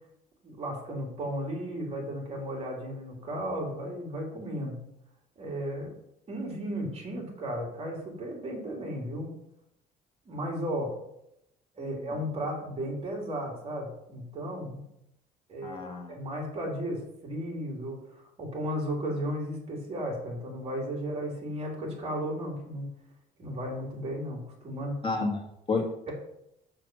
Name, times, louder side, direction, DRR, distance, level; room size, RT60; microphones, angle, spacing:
voice 1, 0.4-4.8 5.4-5.9 6.3-9.3 10.3-10.9 11.7-14.8 15.5-15.8 16.1-22.9 23.4-25.0, equal, 35° right, -1 dB, 3.0 m, -34 dB
voice 2, 15.6-16.2 25.0-26.1, left 3 dB, 30° left, 1 dB, 2.0 m, -31 dB
6.7 x 4.5 x 6.1 m, 0.80 s
cardioid pair, 110°, 17 cm